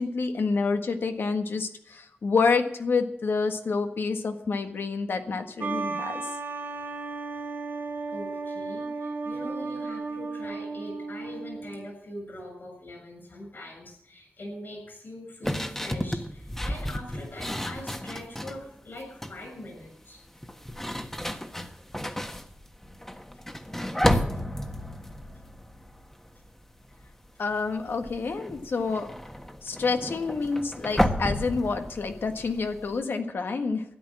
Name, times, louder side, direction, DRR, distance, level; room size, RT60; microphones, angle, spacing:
voice 1, 0.0-6.3 27.4-29.1 29.6-33.8, left 4 dB, 80° left, 6 dB, 1.6 m, -28 dB
sound 1, 5.6-11.9, right 4 dB, 90° right, 3.1 m, -34 dB
voice 2, 8.1-20.2, left 1 dB, 60° left, 4 dB, 7.3 m, -42 dB
sound 2, 15.4-18.6 19.0-19.5 20.4-26.6 26.9-27.3 27.5-33.0, left 1 dB, 10° left, 1.4 m, -32 dB
13.0 x 10.0 x 7.6 m, 0.75 s
cardioid pair, 55°, 4 cm